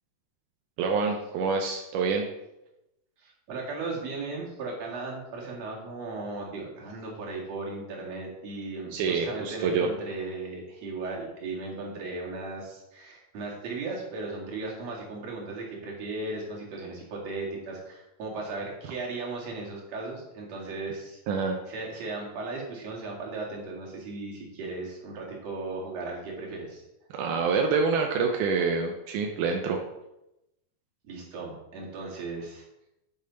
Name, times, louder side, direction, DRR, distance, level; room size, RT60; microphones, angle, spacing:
voice 1, 0.8-2.3 8.9-9.9 21.3-21.6 27.1-29.8, right 5 dB, 85° right, 2 dB, 2.3 m, -26 dB
voice 2, 3.2-21.2 21.7-26.9 31.0-32.6, right 3 dB, 60° right, -3 dB, 3.2 m, -36 dB
10.5 x 6.5 x 4.0 m, 0.90 s
omnidirectional pair, 3.6 m